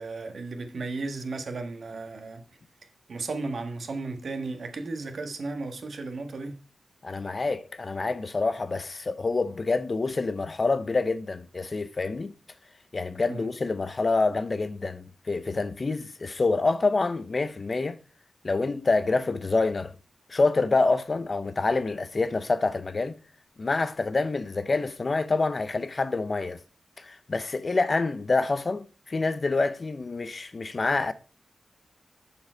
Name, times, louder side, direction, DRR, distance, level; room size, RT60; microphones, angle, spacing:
voice 1, 0.0-2.4 3.1-6.6 13.3-13.5, right 3 dB, 60° right, 1.5 m, -34 dB
voice 2, 7.0-12.3 12.9-18.0 18.4-19.9 20.3-23.2 23.6-26.6 27.0-31.1, left 3 dB, 40° left, 0.7 m, -27 dB
7.1 x 7.1 x 4.4 m
wide cardioid pair, 125°, 0 cm